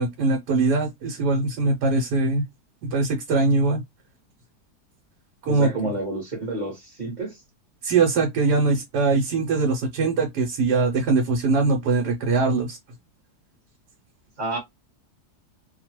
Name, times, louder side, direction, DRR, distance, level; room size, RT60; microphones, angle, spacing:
voice 1, 0.0-2.4 2.8-3.8 5.4-5.7 7.8-12.8, right 3 dB, 90° right, 1.3 m, -22 dB
voice 2, 5.5-7.4 14.4-14.6, right 2 dB, 30° right, 1.0 m, -29 dB
2.8 x 2.3 x 2.9 m
omnidirectional pair, 1.7 m